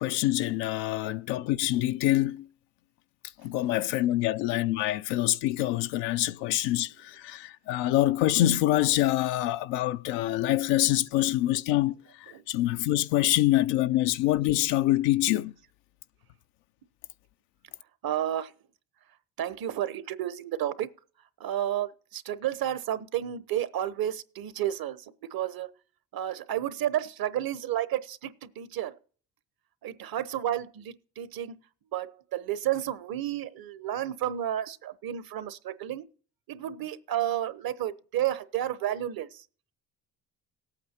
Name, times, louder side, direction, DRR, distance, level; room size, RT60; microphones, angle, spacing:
voice 1, 0.0-2.5 3.4-15.5, left 15 dB, 85° left, 0.6 m, -25 dB
voice 2, 18.0-18.5 19.4-20.9 21.4-25.7 26.1-28.9 29.8-31.6 31.9-36.1 36.5-39.4, right 11 dB, 55° right, 1.0 m, -31 dB
19.0 x 8.7 x 2.8 m
supercardioid pair, 65°, 42 cm